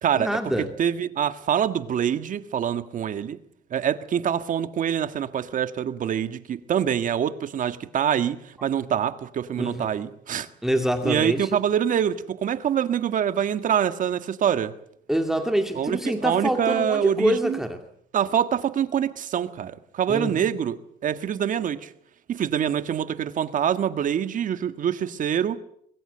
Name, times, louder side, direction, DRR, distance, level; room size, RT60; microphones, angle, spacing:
voice 1, 0.2-0.7 9.6-9.9 10.6-11.6 15.1-17.8 20.1-20.5, equal, 5° right, 2.3 m, -25 dB
voice 2, 0.8-3.4 3.7-10.5 11.0-14.8 15.7-17.6 18.1-21.9 22.3-25.6, right 9 dB, 50° right, 1.6 m, -25 dB
23.5 x 22.0 x 7.9 m
cardioid pair, 110°, 17 cm